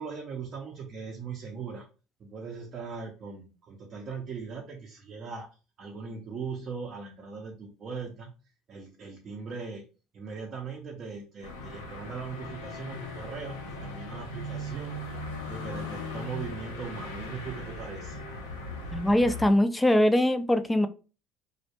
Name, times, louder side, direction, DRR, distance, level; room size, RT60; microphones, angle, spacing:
voice 1, 0.0-1.9 2.2-8.4 8.7-9.8 10.1-14.9 15.5-18.2, right 5 dB, 45° right, 0 dB, 0.5 m, -39 dB
sound 1, 11.4-19.5, left 2 dB, 90° left, 0.5 m, -38 dB
voice 2, 18.9-20.9, left 1 dB, 10° left, 10 dB, 0.3 m, -22 dB
2.1 x 2.1 x 2.8 m, 0.34 s
hypercardioid pair, 70°, 0 cm